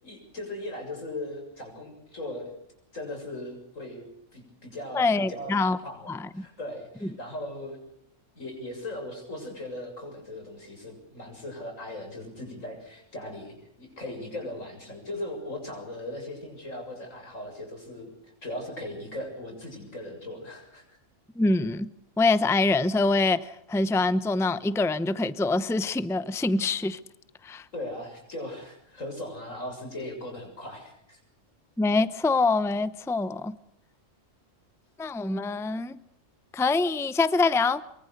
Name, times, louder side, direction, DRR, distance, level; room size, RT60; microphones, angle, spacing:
voice 1, 0.0-2.5 2.9-4.1 4.3-5.5 5.8-7.8 8.3-18.1 18.4-21.0 27.7-31.2, left 1 dB, 85° left, 3 dB, 7.7 m, -38 dB
voice 2, 4.9-5.8 6.1-6.4 21.4-21.9 22.2-27.0 27.4-27.6 31.8-33.6 35.0-36.0 36.5-37.8, left 3 dB, 5° left, 14 dB, 0.7 m, -25 dB
24.0 x 24.0 x 6.6 m, 0.75 s
omnidirectional pair, 1.3 m